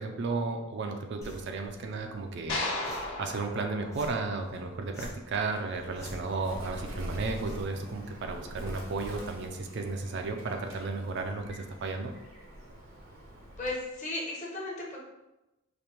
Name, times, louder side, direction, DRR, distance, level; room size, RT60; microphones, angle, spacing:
voice 1, 0.0-12.1, right 3 dB, 55° right, 4 dB, 0.4 m, -34 dB
sound 1, 1.2-9.2, equal, 15° left, 0.6 m, -50 dB
sound 2, 2.5-4.8, left 2 dB, 90° left, 1.1 m, -36 dB
Bird, 5.6-13.9, equal, 75° right, 0.8 m, -45 dB
voice 2, 13.6-15.0, left 2 dB, 35° left, -3 dB, 0.9 m, -35 dB
5.1 x 2.2 x 2.9 m, 0.99 s
head